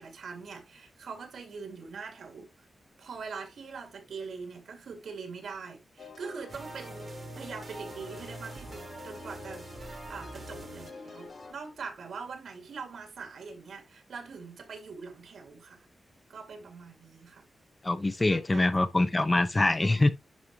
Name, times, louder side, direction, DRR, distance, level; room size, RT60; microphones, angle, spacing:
voice 1, 0.0-2.5 3.0-15.9 16.3-17.5 18.2-18.6 19.8-20.0, right 5 dB, 90° right, 2.4 m, -43 dB
sound 1, 6.0-11.5, left 4 dB, 55° left, 1.3 m, -47 dB
sound 2, 6.5-11.8, right 3 dB, 45° right, 1.3 m, -45 dB
voice 2, 17.8-20.1, left 2 dB, 25° left, 0.9 m, -24 dB
10.5 x 4.6 x 3.0 m
wide cardioid pair, 120°, 0 cm